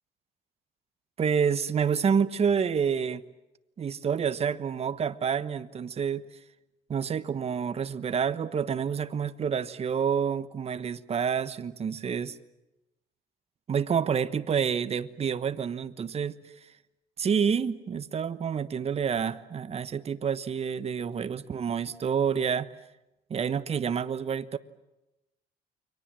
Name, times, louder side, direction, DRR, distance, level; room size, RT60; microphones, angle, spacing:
voice 1, 1.2-3.2 3.8-6.2 6.9-12.4 13.7-16.4 17.2-22.7 23.3-24.6, right 7 dB, 35° right, 13 dB, 1.3 m, -28 dB
29.5 x 23.5 x 7.7 m, 0.95 s
cardioid pair, 110°, 17 cm